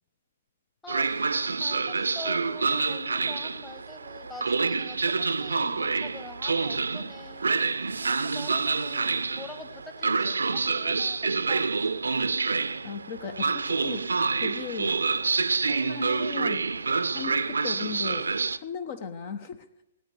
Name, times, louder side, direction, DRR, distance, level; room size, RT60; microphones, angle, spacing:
voice 1, 0.8-7.5 8.0-11.2 11.5-11.7, left 3 dB, 10° left, 9 dB, 1.4 m, -45 dB
Train, 0.9-18.6, right 4 dB, 75° right, 0.6 m, -27 dB
voice 2, 12.8-14.1 14.3-14.9 15.6-16.6 17.1-19.7, left 6 dB, 45° left, 12 dB, 1.1 m, -37 dB
18.5 x 9.2 x 6.9 m, 0.87 s
figure-of-eight pair, 120°, 0 cm